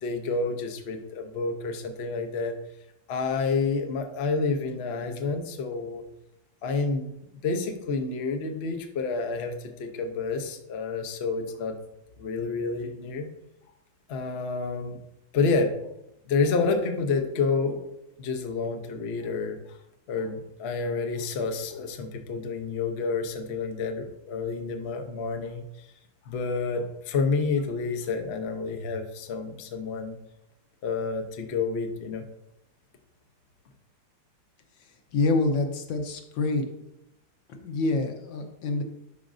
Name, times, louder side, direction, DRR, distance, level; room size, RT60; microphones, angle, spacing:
voice 1, 0.0-2.6 3.1-6.0 6.6-7.1 7.4-9.5 9.8-11.7 12.2-13.3 14.1-15.0 15.3-15.7 16.3-19.6 20.1-25.6 26.3-30.2 30.8-32.2, left 4 dB, 50° left, 5 dB, 0.8 m, -29 dB
voice 2, 35.1-36.7 37.5-38.8, left 3 dB, 90° left, 4 dB, 1.7 m, -26 dB
11.0 x 5.2 x 2.6 m, 0.85 s
omnidirectional pair, 2.0 m